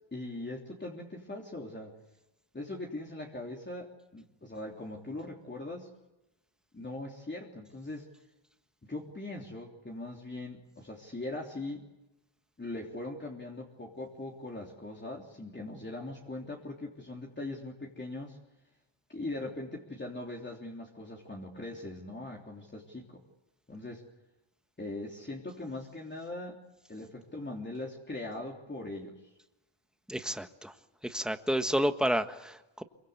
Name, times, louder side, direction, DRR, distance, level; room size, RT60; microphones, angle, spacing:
voice 1, 0.1-2.0 2.5-5.9 6.7-8.1 8.8-11.9 12.6-18.4 19.1-23.2 23.7-24.0 24.8-26.6 26.9-29.3, left 2 dB, 20° left, -1 dB, 3.4 m, -41 dB
voice 2, 30.1-30.7 31.0-32.8, equal, ahead, 8 dB, 1.5 m, -30 dB
26.5 x 24.0 x 8.2 m, 1.0 s
wide cardioid pair, 110°, 48 cm